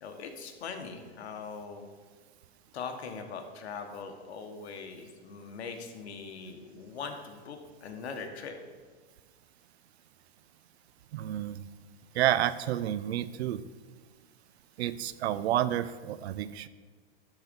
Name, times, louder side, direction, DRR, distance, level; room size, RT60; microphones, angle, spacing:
voice 1, 0.0-1.9 2.7-8.6, left 5 dB, 90° left, 5 dB, 1.3 m, -41 dB
voice 2, 11.1-11.6 12.2-13.6 14.8-16.7, right 12 dB, 80° right, 15 dB, 0.6 m, -30 dB
12.0 x 4.1 x 5.2 m, 1.5 s
supercardioid pair, 135°, 32 cm